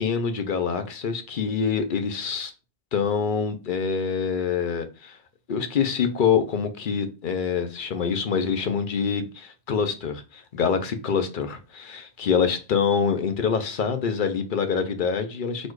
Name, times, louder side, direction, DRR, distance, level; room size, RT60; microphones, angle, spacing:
voice 1, 0.0-2.5 2.9-5.2 5.5-15.7, left 6 dB, 55° left, 0.8 m, -25 dB
4.2 x 2.6 x 4.5 m
omnidirectional pair, 1.1 m